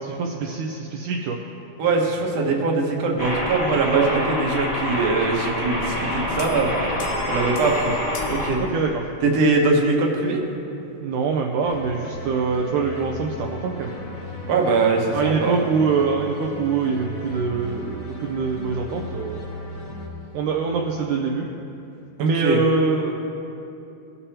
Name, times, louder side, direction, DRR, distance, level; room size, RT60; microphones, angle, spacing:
voice 1, 0.0-1.4 3.9-4.3 8.6-9.0 11.0-13.9 15.1-19.4 20.3-21.5 22.2-23.1, right 5 dB, 80° right, 0 dB, 2.0 m, -24 dB
voice 2, 1.8-6.7 7.2-8.0 8.3-8.6 9.2-10.4 14.5-15.6 22.2-22.6, right 3 dB, 60° right, 0 dB, 1.9 m, -22 dB
sound 1, 3.2-8.5, equal, 20° left, 0.7 m, -27 dB
sound 2, 6.4-9.4, left 6 dB, 85° left, 2.3 m, -39 dB
sound 3, 11.6-20.1, equal, 55° left, 2.8 m, -36 dB
20.0 x 6.9 x 2.9 m, 2.8 s
omnidirectional pair, 3.9 m